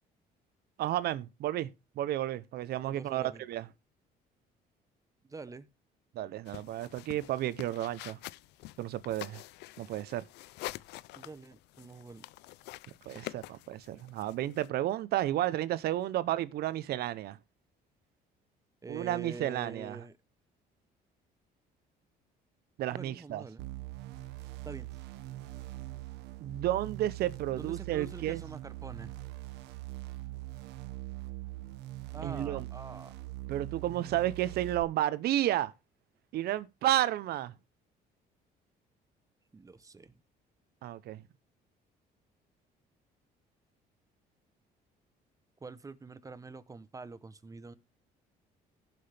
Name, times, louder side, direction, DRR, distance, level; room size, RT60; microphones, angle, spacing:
voice 1, 0.8-1.7 2.0-3.6 6.1-8.2 8.8-9.4 9.8-10.2 13.1-17.4 18.9-20.0 22.8-23.4 26.4-28.4 32.2-32.6 33.5-35.7 36.3-37.5 40.8-41.2, right 13 dB, 70° right, 0.7 m, -32 dB
voice 2, 2.9-3.4 5.2-5.7 11.1-12.2 18.8-20.2 22.9-23.6 24.6-24.9 27.5-29.1 32.1-33.1 39.5-40.1 45.6-47.7, right 3 dB, 20° right, 0.8 m, -46 dB
sound 1, 6.5-14.7, left 18 dB, 80° left, 0.5 m, -47 dB
sound 2, 23.6-34.8, right 18 dB, 85° right, 1.1 m, -42 dB
17.0 x 5.9 x 3.4 m
cardioid pair, 110°, 17 cm